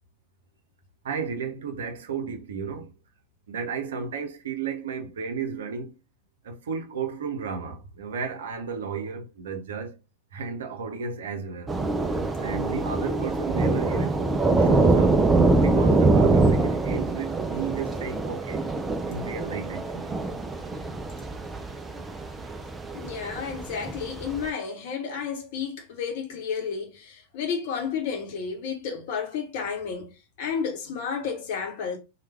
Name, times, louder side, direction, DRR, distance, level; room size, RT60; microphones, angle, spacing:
voice 1, 1.0-2.9 3.5-5.9 6.4-10.0 10.3-11.8 12.4-14.3 14.6-18.6 19.1-20.2, right 6 dB, 60° right, 0.7 m, -33 dB
Thunder / Rain, 11.7-24.5, right 3 dB, 15° right, 0.4 m, -24 dB
voice 2, 12.1-12.5 22.9-30.1 30.4-32.0, left 6 dB, 50° left, 0.9 m, -32 dB
3.2 x 2.3 x 3.2 m
figure-of-eight pair, 90°, 0 cm